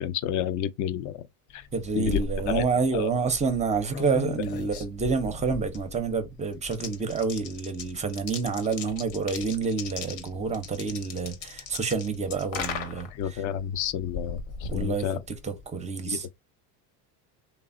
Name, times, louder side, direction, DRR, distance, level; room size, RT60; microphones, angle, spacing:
voice 1, 0.0-1.3 1.5-1.6 1.9-2.6 2.9-3.1 13.1-15.2 16.1-16.2, left 10 dB, 45° left, 0.4 m, -30 dB
sound 1, 1.6-15.7, left 5 dB, 75° left, 0.9 m, -38 dB
voice 2, 1.7-13.4 14.7-16.3, right 5 dB, 15° right, 0.5 m, -28 dB
3.2 x 2.1 x 2.5 m
supercardioid pair, 115°, 45 cm